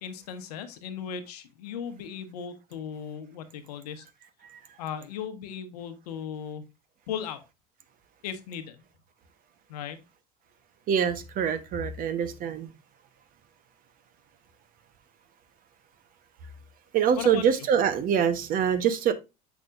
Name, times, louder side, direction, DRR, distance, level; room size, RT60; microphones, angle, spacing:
voice 1, 0.0-4.0 4.8-6.7 7.1-7.4 8.2-8.8 9.7-10.0 17.2-17.4, left 8 dB, 80° left, 1.1 m, -37 dB
voice 2, 10.9-12.7 16.9-19.1, right 8 dB, 45° right, 1.1 m, -24 dB
7.2 x 5.8 x 2.5 m
hypercardioid pair, 85°, 20 cm